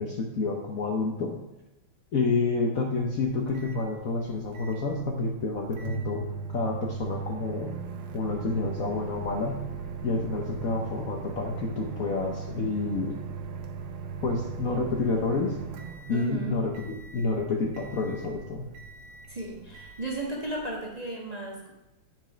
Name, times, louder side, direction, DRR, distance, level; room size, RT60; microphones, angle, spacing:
voice 1, 0.0-1.4 2.1-6.2 6.5-7.7 8.1-9.6 10.0-13.2 14.2-15.6 16.1-18.7, left 3 dB, 55° left, 0 dB, 1.0 m, -29 dB
Microwave oven, 2.9-20.9, right 6 dB, 85° right, 1.7 m, -39 dB
voice 2, 16.1-16.6 19.3-21.7, right 2 dB, 25° right, -3 dB, 1.1 m, -34 dB
9.1 x 5.3 x 5.0 m, 0.96 s
omnidirectional pair, 2.3 m